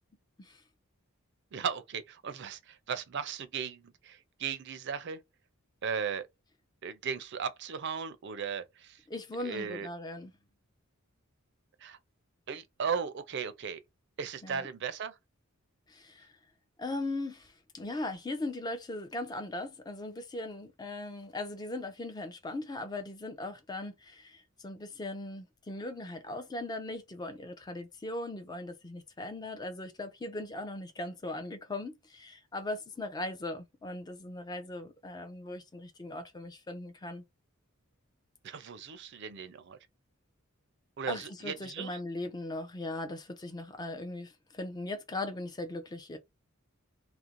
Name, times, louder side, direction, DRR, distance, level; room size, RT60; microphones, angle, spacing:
voice 1, 1.5-5.2 5.8-6.3 6.8-9.0 9.4-9.9 11.8-12.0 12.5-13.8 14.2-15.2 38.4-39.8 41.0-42.0, right 6 dB, 55° right, 0.4 m, -36 dB
voice 2, 9.1-10.3 14.4-14.7 15.9-16.3 16.8-37.2 41.1-46.2, left 2 dB, 20° left, 0.4 m, -39 dB
2.5 x 2.1 x 2.8 m
head